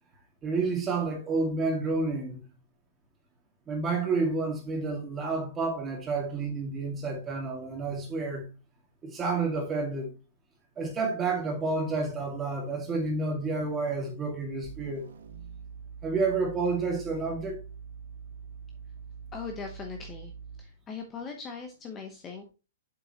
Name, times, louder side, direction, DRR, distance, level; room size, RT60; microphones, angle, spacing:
voice 1, 0.4-2.4 3.7-8.5 9.0-10.1 10.8-15.1 16.0-17.6, right 3 dB, 15° right, 2.1 m, -30 dB
sound 1, 14.6-20.8, right 6 dB, 85° right, 2.4 m, -44 dB
voice 2, 19.3-20.3 20.6-22.5, left 5 dB, 15° left, 0.9 m, -40 dB
7.7 x 6.7 x 2.9 m
hypercardioid pair, 165°, 0 cm